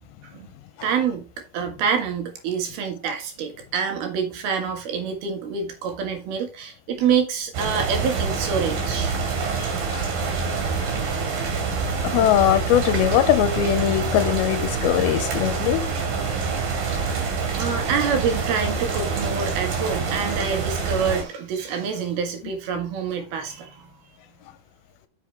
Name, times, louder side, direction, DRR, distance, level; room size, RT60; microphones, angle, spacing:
voice 1, 0.8-1.2 1.5-9.1 11.4-11.5 11.8-12.0 15.9-16.0 16.9-17.1 17.6-23.9, right 6 dB, 80° right, 3.6 m, -27 dB
sound 1, 7.5-21.2, right 5 dB, 65° right, 4.0 m, -26 dB
voice 2, 9.6-10.1 12.0-15.8, left 11 dB, 90° left, 2.6 m, -21 dB
8.7 x 6.9 x 3.4 m
omnidirectional pair, 4.4 m